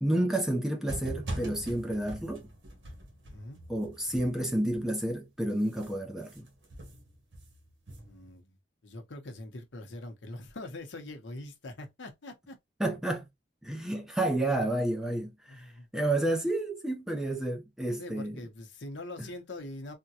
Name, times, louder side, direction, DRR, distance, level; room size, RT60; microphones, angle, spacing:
voice 1, 0.0-2.5 3.7-6.5 12.8-13.3 13.6-18.4 19.2-19.3, right 1 dB, 5° right, 0.5 m, -30 dB
sound 1, 0.9-5.2 5.5-8.4, right 1 dB, 75° right, 1.1 m, -43 dB
voice 2, 3.3-3.6 8.0-8.6 8.8-12.6 15.5-15.9 17.8-19.9, left 2 dB, 75° left, 0.8 m, -43 dB
3.5 x 2.2 x 2.7 m
head